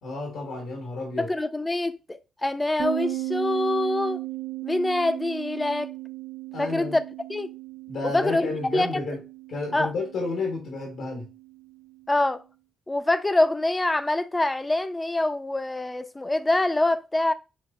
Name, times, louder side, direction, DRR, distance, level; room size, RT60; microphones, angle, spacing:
voice 1, 0.0-1.3 6.5-7.0 7.9-9.2 9.5-11.3, left 3 dB, 80° left, 1.2 m, -31 dB
voice 2, 1.2-4.2 4.6-5.9 6.6-7.0 7.3-7.5 8.0-9.0 9.7-9.9 12.1-12.4 12.9-17.3, left 2 dB, 15° left, 0.4 m, -25 dB
sound 1, 2.8-12.3, right 17 dB, 70° right, 0.7 m, -36 dB
5.7 x 2.8 x 2.3 m
cardioid pair, 90°, 0 cm